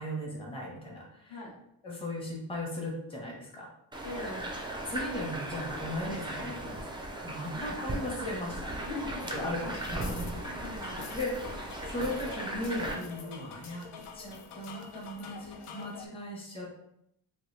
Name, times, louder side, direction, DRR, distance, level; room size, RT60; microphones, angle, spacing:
voice 1, 0.0-1.4 1.8-3.7 4.1-4.2 4.8-6.8 7.2-8.7 9.3-10.3 11.1-13.9 14.1-16.8, left 1 dB, 10° left, -3 dB, 0.8 m, -37 dB
sound 1, 3.9-12.9, right 1 dB, 10° right, 0.3 m, -37 dB
voice 2, 4.0-4.5 7.5-7.8 8.8-9.8 10.6-11.0, left 3 dB, 50° left, -2 dB, 0.9 m, -42 dB
sound 2, 9.2-16.1, left 5 dB, 90° left, 0.6 m, -46 dB
3.0 x 2.3 x 3.2 m, 0.76 s
cardioid pair, 90°, 50 cm